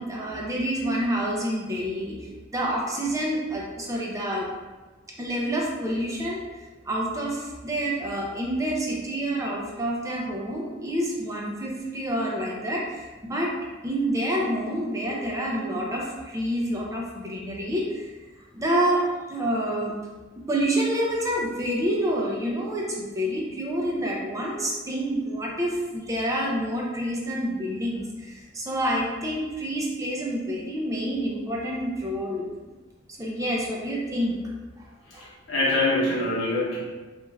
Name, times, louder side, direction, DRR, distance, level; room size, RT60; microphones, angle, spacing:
voice 1, 0.0-4.5 5.2-6.4 6.9-13.5 13.8-18.1 18.5-19.9 20.4-32.5 33.1-34.4 35.1-35.3, right 1 dB, 15° right, -2 dB, 0.5 m, -28 dB
voice 2, 35.1-36.8, left 2 dB, 80° left, -6 dB, 0.9 m, -25 dB
2.5 x 2.3 x 3.1 m, 1.3 s
head